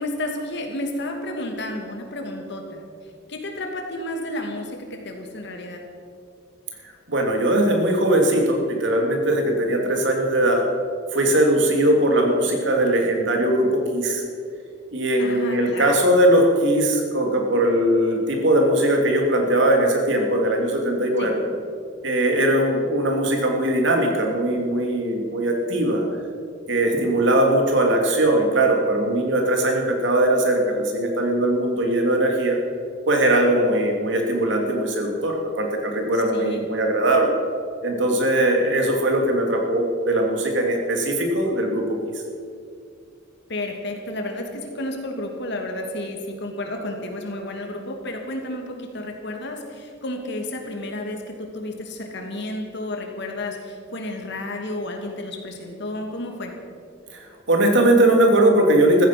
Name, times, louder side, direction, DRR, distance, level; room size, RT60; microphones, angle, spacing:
voice 1, 0.0-2.8 3.3-5.8 15.2-16.2 21.2-21.3 36.1-36.7 43.5-56.5, left 1 dB, 65° left, 3 dB, 2.6 m, -31 dB
voice 2, 7.1-10.6 11.1-14.2 14.9-21.4 22.0-26.1 26.7-32.6 33.1-37.3 37.8-42.0 57.5-59.1, right 1 dB, 65° right, 2 dB, 2.8 m, -20 dB
15.0 x 14.5 x 6.1 m, 2.3 s
head